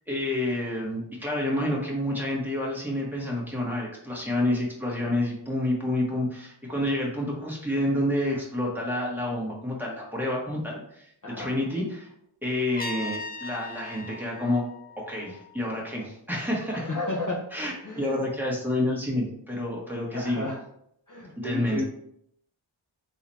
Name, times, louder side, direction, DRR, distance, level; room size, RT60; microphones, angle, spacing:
voice 1, 0.1-12.1 12.4-14.6 15.0-16.9 17.5-20.5 21.4-21.8, left 1 dB, 5° right, -4 dB, 1.5 m, -29 dB
voice 2, 11.2-11.5 16.7-17.4 17.8-18.2 20.1-20.6 21.1-21.8, left 2 dB, 40° left, -2 dB, 0.9 m, -32 dB
Trumpet, 12.8-15.7, left 3 dB, 20° left, 0.3 m, -39 dB
4.0 x 2.9 x 4.1 m, 0.71 s
wide cardioid pair, 50°, 48 cm